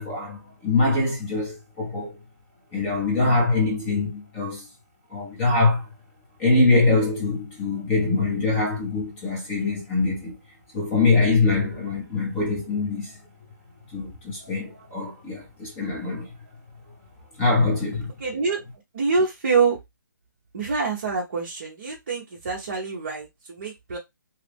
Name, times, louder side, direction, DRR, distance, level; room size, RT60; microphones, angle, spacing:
voice 1, 0.0-2.2 2.7-4.7 5.1-5.9 6.4-10.4 10.7-13.2 13.9-16.3 17.4-18.1, left 3 dB, 10° left, 0.9 m, -23 dB
voice 2, 18.2-18.6 18.9-19.8 20.5-24.0, right 4 dB, 35° right, 0.7 m, -25 dB
3.0 x 2.3 x 3.4 m
hypercardioid pair, 170°, 10 cm